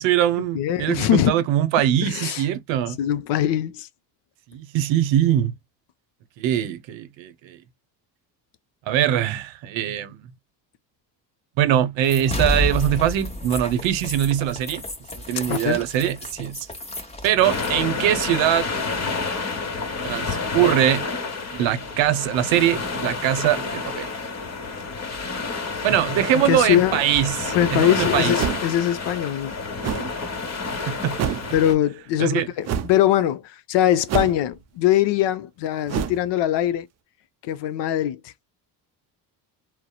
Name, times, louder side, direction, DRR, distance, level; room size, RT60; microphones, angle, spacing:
voice 1, 0.0-3.0 4.5-5.5 6.4-7.6 8.9-10.3 11.6-14.8 15.1-16.7 17.2-18.7 20.0-21.0 21.5-24.1 25.8-28.3 30.9-31.3 32.2-32.5, right 11 dB, 65° right, 0.7 m, -22 dB
voice 2, 0.5-1.4 2.0-2.4 3.0-3.9 15.5-15.8 26.3-27.0 27.5-29.5 31.5-36.9 37.4-38.3, left 11 dB, 60° left, 0.5 m, -22 dB
sound 1, 12.1-17.9, left 1 dB, 15° left, 0.8 m, -31 dB
sound 2, 17.4-31.7, left 4 dB, 30° left, 1.1 m, -29 dB
sound 3, 28.4-28.8 29.8-30.1 31.2-31.5 32.6-33.0 34.1-34.6 35.9-36.2, right 9 dB, 35° right, 0.4 m, -27 dB
2.8 x 2.0 x 2.2 m
supercardioid pair, 75°, 49 cm